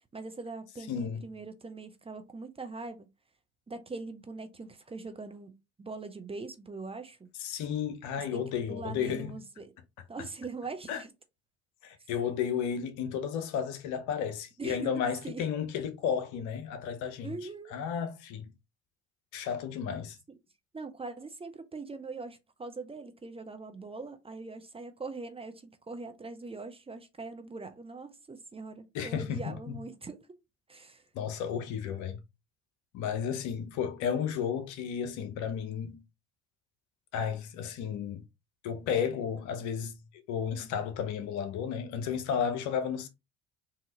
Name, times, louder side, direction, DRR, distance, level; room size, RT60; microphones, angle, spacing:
voice 1, 0.1-3.1 3.7-7.3 8.3-9.7 10.1-11.1 14.6-14.9 15.2-15.4 17.2-17.8 20.7-30.2 30.7-31.0, right 3 dB, 15° right, 0.7 m, -42 dB
voice 2, 0.9-1.2 7.4-9.4 10.9-11.0 11.8-17.3 17.7-18.5 19.3-20.2 28.9-29.7 31.1-32.2 32.9-36.0 37.1-38.2 38.6-40.0 40.3-43.1, left 7 dB, 60° left, 0.9 m, -33 dB
3.7 x 2.8 x 3.9 m
hypercardioid pair, 60°, 34 cm